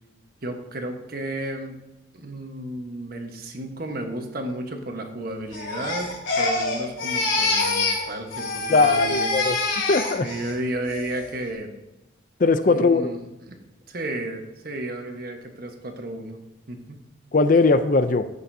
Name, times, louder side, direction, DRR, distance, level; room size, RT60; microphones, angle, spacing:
voice 1, 0.4-1.8 2.1-6.1 6.4-9.3 10.2-11.8 12.7-13.6 13.9-17.0, right 1 dB, 50° right, 4 dB, 1.3 m, -33 dB
Crying sobbing, 5.5-8.1 8.3-10.5 10.9-11.3, left 3 dB, 85° left, 2.7 m, -26 dB
voice 2, 8.7-9.6 9.9-10.3 12.4-13.1 17.3-18.3, left 3 dB, 45° left, 11 dB, 0.5 m, -19 dB
15.0 x 6.7 x 2.7 m, 1.0 s
head